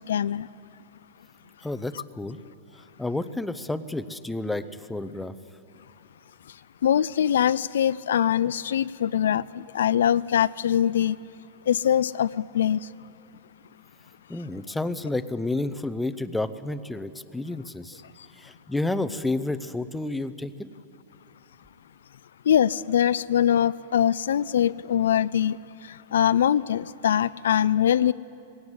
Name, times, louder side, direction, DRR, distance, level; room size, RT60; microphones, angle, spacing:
voice 1, 0.1-0.5 6.8-11.2 11.7-12.3 12.5-12.8 22.5-25.6 26.1-28.1, left 10 dB, 85° left, 0.4 m, -22 dB
voice 2, 1.6-2.4 3.0-5.3 14.3-18.0 18.4-20.7, left 2 dB, 5° left, 0.6 m, -30 dB
19.5 x 17.5 x 8.0 m
hypercardioid pair, 145°, 0 cm